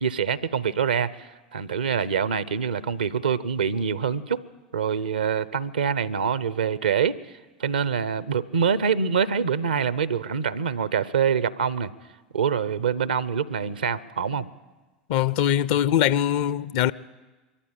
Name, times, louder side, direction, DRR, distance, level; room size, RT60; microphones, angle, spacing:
voice 1, 0.0-4.4 4.7-7.2 7.6-11.9 12.3-14.5, right 7 dB, 85° right, 0.7 m, -25 dB
voice 2, 15.1-16.9, left 10 dB, 60° left, 0.6 m, -22 dB
22.5 x 14.5 x 9.0 m
hypercardioid pair, 85°, 5 cm